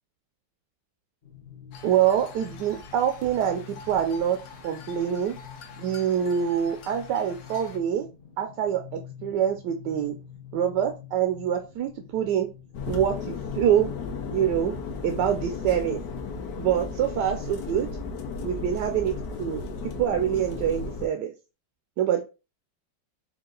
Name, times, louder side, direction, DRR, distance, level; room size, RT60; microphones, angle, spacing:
sound 1, 1.2-17.2, left 9 dB, 40° left, 0.8 m, -47 dB
sound 2, 1.7-7.8, left 4 dB, 85° left, 1.4 m, -46 dB
voice 1, 1.8-4.4 4.6-5.4 5.8-8.1 8.4-8.8 9.2-10.1 10.5-12.5 12.9-13.9 14.3-14.7 15.0-16.0 16.6-17.9 18.4-21.3 22.0-22.2, right 9 dB, 75° right, 5 dB, 1.1 m, -25 dB
sound 3, 12.7-21.1, left 4 dB, 70° left, 1.3 m, -34 dB
4.7 x 2.5 x 3.8 m, 0.30 s
omnidirectional pair, 2.0 m